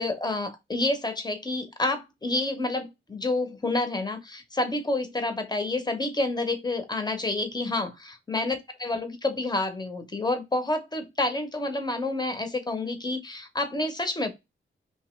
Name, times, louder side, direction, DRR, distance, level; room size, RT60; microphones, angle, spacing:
voice 1, 0.0-14.3, left 2 dB, 20° left, 0.7 m, -29 dB
2.9 x 2.8 x 3.1 m
wide cardioid pair, 125°, 21 cm